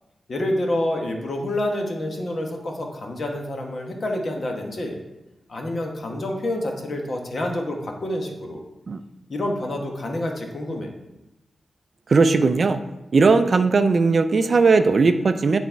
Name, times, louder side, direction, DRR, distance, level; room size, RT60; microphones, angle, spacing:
voice 1, 0.3-5.0 5.5-8.6 9.3-10.9, left 1 dB, 45° left, 2 dB, 1.1 m, -28 dB
voice 2, 12.1-12.8 13.1-15.6, right 4 dB, 40° right, 9 dB, 0.4 m, -18 dB
9.5 x 4.1 x 4.5 m, 0.98 s
wide cardioid pair, 165°, 0 cm